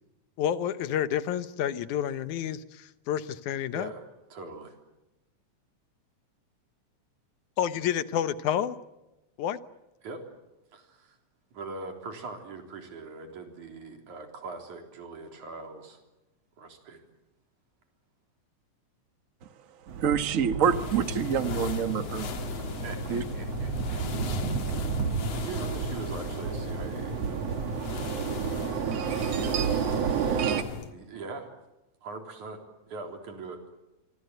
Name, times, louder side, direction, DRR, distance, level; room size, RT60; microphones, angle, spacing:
voice 1, 0.4-3.9 7.6-8.8 9.4-9.6, left 10 dB, 85° left, 13 dB, 2.5 m, -29 dB
voice 2, 3.7-4.0 4.3-4.8 10.0-10.3 10.7-11.2 11.5-16.0 16.6-17.0 22.8-24.0 25.3-27.4 30.9-31.5 32.0-33.6, right 3 dB, 90° right, 4 dB, 5.0 m, -41 dB
sound 1, 19.9-30.6, right 7 dB, 60° right, 2.5 m, -31 dB
voice 3, 20.0-22.3 23.1-23.2, right 7 dB, 45° right, 10 dB, 1.1 m, -26 dB
sound 2, 20.6-30.9, left 5 dB, 60° left, 2.8 m, -37 dB
25.5 x 25.0 x 8.0 m, 0.99 s
omnidirectional pair, 3.3 m